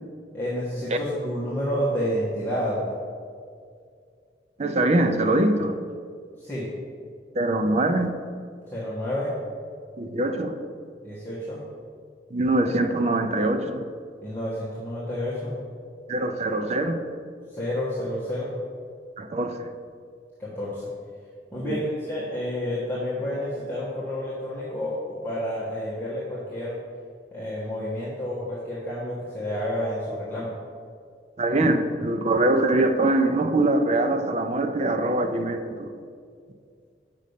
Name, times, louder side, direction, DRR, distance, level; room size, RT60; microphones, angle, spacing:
voice 1, 0.3-2.9 6.4-6.7 8.7-9.3 11.0-11.6 14.2-15.5 17.5-18.5 20.4-20.9 21.5-26.8 27.3-30.5, equal, 10° left, -10 dB, 1.3 m, -30 dB
voice 2, 4.6-5.8 7.3-8.1 10.0-10.6 12.3-13.8 16.1-17.0 19.2-19.7 21.6-21.8 31.4-35.9, right 2 dB, 40° right, 7 dB, 0.5 m, -23 dB
6.4 x 5.3 x 6.6 m, 2.2 s
head